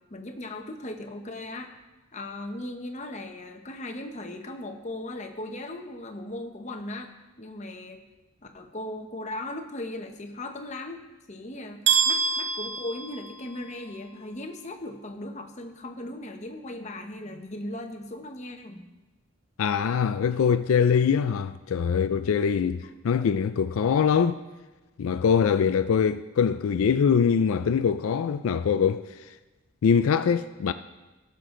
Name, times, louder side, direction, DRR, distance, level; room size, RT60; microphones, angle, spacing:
voice 1, 0.1-1.8 2.1-7.1 7.4-8.0 8.4-11.0 11.3-18.8, left 1 dB, 35° left, 0.9 m, -38 dB
sound 1, 11.9-13.8, right 6 dB, 60° right, 1.5 m, -26 dB
voice 2, 19.6-24.4 25.0-29.0 29.8-30.7, left 6 dB, 80° left, 0.4 m, -23 dB
17.0 x 6.8 x 3.8 m
head